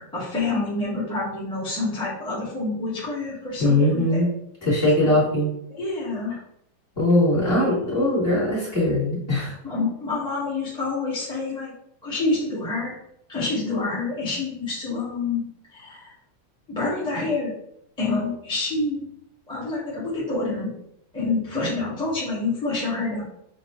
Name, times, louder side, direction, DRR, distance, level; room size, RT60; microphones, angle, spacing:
voice 1, 0.0-4.3 5.0-5.1 5.7-6.4 9.6-11.7 12.0-13.0 13.3-15.4 15.7-16.1 16.7-17.5 18.0-19.1 19.5-20.7 21.1-23.2, left 3 dB, 5° left, -8 dB, 1.2 m, -27 dB
voice 2, 3.6-4.3 4.6-5.5 7.0-9.5, left 1 dB, 30° left, -8 dB, 2.2 m, -20 dB
6.3 x 2.6 x 3.1 m, 0.76 s
omnidirectional pair, 2.1 m